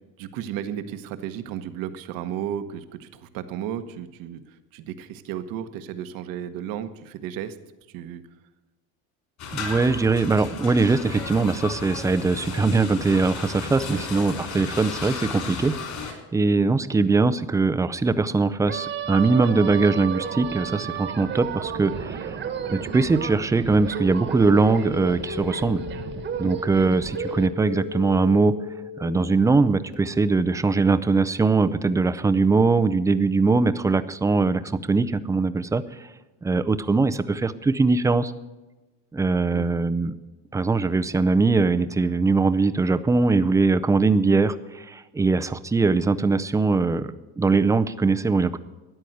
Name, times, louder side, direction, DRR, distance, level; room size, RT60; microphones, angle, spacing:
voice 1, 0.2-7.6 7.9-8.2 13.8-14.0 26.3-26.5 39.5-39.7, right 10 dB, 70° right, 11 dB, 1.2 m, -34 dB
sound 1, 9.4-16.1, left 5 dB, 50° left, 3.8 m, -34 dB
voice 2, 9.5-15.8 16.0-22.4 22.7-25.8 26.4-28.5 29.0-35.8 36.4-38.3 39.1-40.1 40.5-48.6, right 3 dB, 10° right, 12 dB, 0.4 m, -21 dB
sound 2, 18.7-27.5, right 7 dB, 30° right, 1.3 m, -33 dB
sound 3, 24.4-30.0, left 9 dB, 90° left, 2.8 m, -37 dB
13.5 x 9.9 x 7.9 m, 1.1 s
cardioid pair, 145°, 35 cm